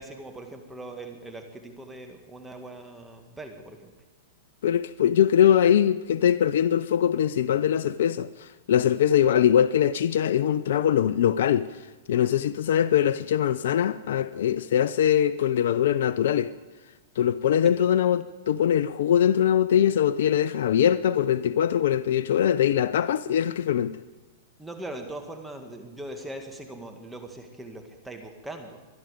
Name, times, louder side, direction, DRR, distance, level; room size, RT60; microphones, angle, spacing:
voice 1, 0.0-3.9 17.6-17.7 24.6-28.8, right 1 dB, 5° right, 2.1 m, -40 dB
voice 2, 4.6-8.3 8.7-11.6 12.1-16.5 17.2-23.9, left 9 dB, 70° left, 0.6 m, -22 dB
24.0 x 10.5 x 5.2 m
hypercardioid pair, 120°, 0 cm